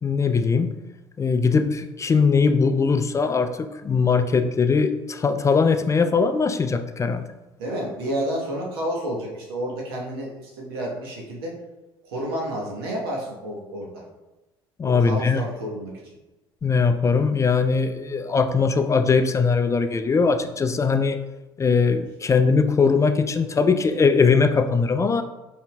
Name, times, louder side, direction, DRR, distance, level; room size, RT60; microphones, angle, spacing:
voice 1, 0.0-0.7 1.2-7.3 14.8-15.4 16.6-21.2 21.6-25.2, left 5 dB, 25° left, 9 dB, 0.3 m, -20 dB
voice 2, 7.6-11.5 12.0-14.0 14.8-16.1, right 1 dB, 75° right, -2 dB, 1.1 m, -30 dB
5.4 x 3.5 x 2.2 m, 1.0 s
hypercardioid pair, 55°, 13 cm